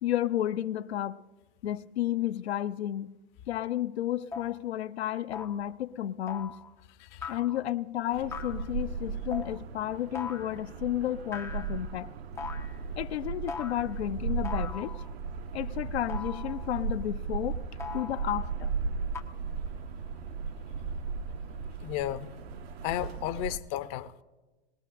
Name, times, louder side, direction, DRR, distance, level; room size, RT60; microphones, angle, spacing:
voice 1, 0.0-1.2 1.6-3.1 3.5-6.6 7.3-12.1 13.0-14.9 15.5-17.6 17.9-18.7, left 12 dB, 80° left, 0.7 m, -32 dB
sound 1, 3.6-3.7 4.3-4.6 5.3-5.7 6.3-6.7 7.2-7.7 8.3-8.7 9.3-9.6 10.1-10.6 11.3-11.9 12.4-12.8 13.5-14.0 14.4-15.1 16.1-16.8 17.8-18.5 19.1-19.2, left 5 dB, 10° left, 0.4 m, -41 dB
sound 2, 8.1-23.6, right 5 dB, 70° right, 0.7 m, -36 dB
voice 2, 21.8-22.3 22.8-24.2, left 13 dB, 45° left, 0.7 m, -33 dB
20.5 x 19.5 x 2.5 m
hypercardioid pair, 115°, 32 cm